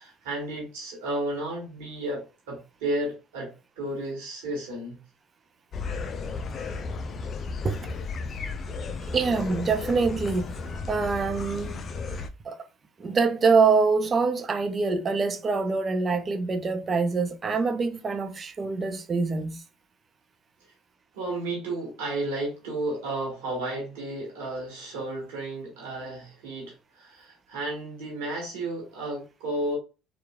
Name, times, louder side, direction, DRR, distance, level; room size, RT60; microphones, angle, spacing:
voice 1, 0.0-5.0 21.1-29.8, right 1 dB, 80° right, 1.1 m, -33 dB
sound 1, 5.7-12.3, left 4 dB, 40° left, 0.4 m, -34 dB
voice 2, 9.1-10.5 10.9-11.8 12.1-12.6 13.0-19.6, right 4 dB, 35° right, 0.5 m, -25 dB
3.0 x 2.3 x 2.2 m
hypercardioid pair, 70°, 0 cm